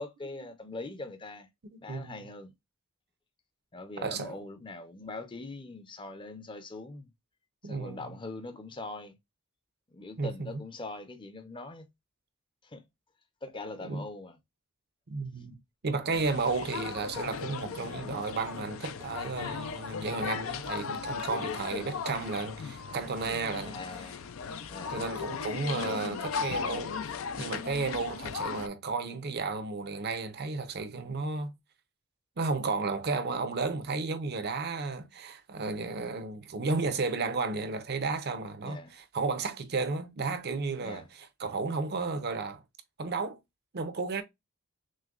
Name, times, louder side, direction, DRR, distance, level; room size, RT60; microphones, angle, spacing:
voice 1, 0.0-1.5 1.8-2.5 3.7-7.1 7.6-9.1 9.9-11.9 12.6-12.8 13.4-14.4 23.7-24.3 24.7-25.2 25.8-26.0 38.6-38.9 40.8-41.1, left 2 dB, 25° left, 0.6 m, -42 dB
voice 2, 1.7-2.3 4.0-4.3 7.6-8.1 10.2-10.6 13.8-14.0 15.1-23.8 24.9-27.0 27.4-31.5 32.4-42.6 43.0-43.4 43.7-44.2, right 4 dB, 50° right, 0.6 m, -33 dB
sound 1, 16.1-28.7, left 6 dB, 65° left, 0.4 m, -37 dB
6.2 x 2.2 x 2.4 m
head